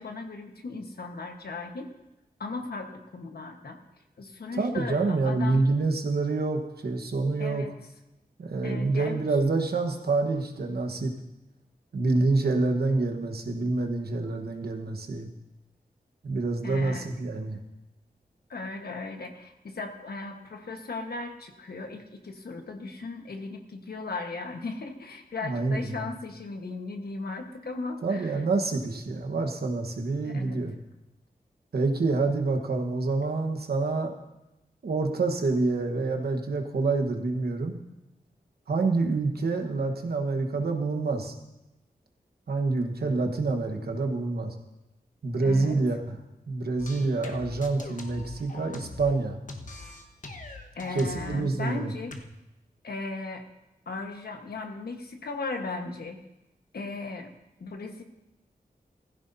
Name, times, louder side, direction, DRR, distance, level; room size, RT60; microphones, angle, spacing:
voice 1, 0.0-1.9 2.4-3.8 4.2-5.7 7.4-7.7 8.6-9.2 16.6-17.1 18.5-28.4 30.2-30.6 45.4-45.8 50.7-52.1 52.8-53.4 53.9-56.2 56.7-57.3 57.6-58.0, left 3 dB, 85° left, 4 dB, 1.4 m, -37 dB
voice 2, 4.6-7.6 8.4-11.1 11.9-15.3 16.2-17.6 25.4-26.1 28.0-30.7 31.7-34.1 34.8-37.8 38.7-41.3 42.5-44.5 45.2-46.2 46.5-49.4 50.9-51.9, right 3 dB, 90° right, 4 dB, 1.3 m, -27 dB
sound 1, 46.8-49.2 49.5-51.4 52.1-52.2, left 2 dB, 55° left, 1.3 m, -42 dB
16.5 x 15.0 x 2.7 m, 0.95 s
wide cardioid pair, 80°, 16 cm